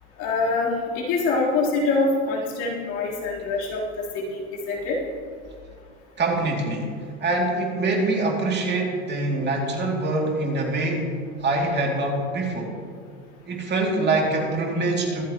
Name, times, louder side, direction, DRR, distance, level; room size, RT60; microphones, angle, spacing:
voice 1, 0.2-5.0, left 3 dB, 55° left, -5 dB, 3.6 m, -25 dB
voice 2, 6.2-11.1 11.4-12.7 13.5-15.2, right 2 dB, 30° right, -1 dB, 2.6 m, -24 dB
24.5 x 8.2 x 3.0 m, 2.1 s
supercardioid pair, 105°, 35 cm